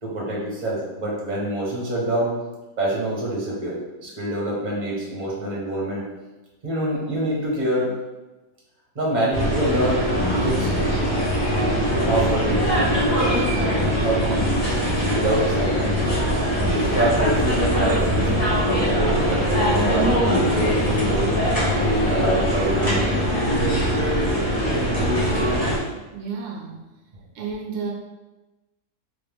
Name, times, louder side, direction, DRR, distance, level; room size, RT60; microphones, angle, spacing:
voice 1, 0.0-2.3 2.8-6.1 6.6-7.9 8.9-10.1 10.4-10.8 12.0-12.9 13.9-14.5 15.1-16.0 16.5-18.3 18.6-21.3 21.8-23.1, right 1 dB, 30° right, -5 dB, 1.2 m, -25 dB
sound 1, 9.3-25.8, equal, 25° left, 1.6 m, -21 dB
voice 2, 26.1-26.8 27.3-27.9, right 5 dB, 90° right, 0 dB, 1.3 m, -31 dB
3.6 x 3.4 x 3.4 m, 1.1 s
omnidirectional pair, 1.6 m